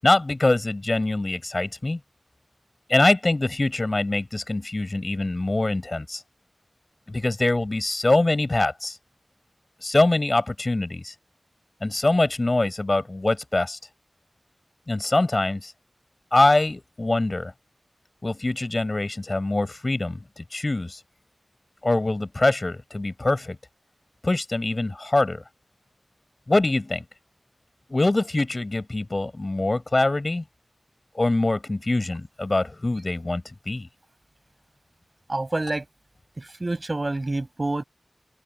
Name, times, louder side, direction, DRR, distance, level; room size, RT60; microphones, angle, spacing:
voice 1, 0.0-2.0 2.9-6.2 7.1-9.0 9.8-11.1 11.8-13.8 14.9-15.7 16.3-17.5 18.2-21.0 21.8-23.6 24.2-25.4 26.5-27.0 27.9-30.4 31.1-33.9, left 2 dB, 45° left, 7.4 m, -23 dB
voice 2, 35.3-35.8 36.4-37.8, right 2 dB, 45° right, 6.2 m, -27 dB
open air
wide cardioid pair, 55°, 0 cm